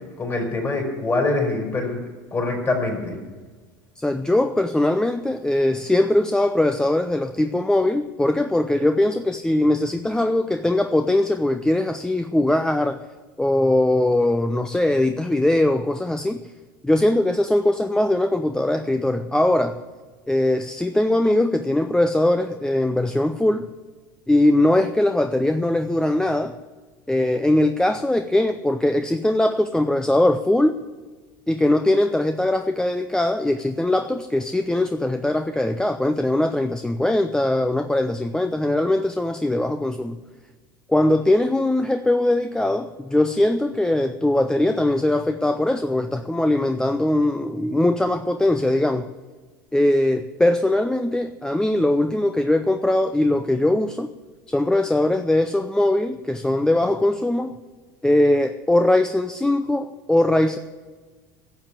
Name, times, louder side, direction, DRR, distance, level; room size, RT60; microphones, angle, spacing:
voice 1, 0.2-2.0 2.3-3.2, left 2 dB, 25° left, 1 dB, 4.3 m, -24 dB
voice 2, 4.0-13.0 13.4-16.5 16.8-19.8 20.3-23.7 24.3-26.6 27.1-30.8 31.5-40.2 40.9-49.1 49.7-54.1 54.5-57.6 58.0-60.6, left 1 dB, 5° left, 9 dB, 0.6 m, -21 dB
12.0 x 7.2 x 9.9 m, 1.4 s
hypercardioid pair, 85°, 11 cm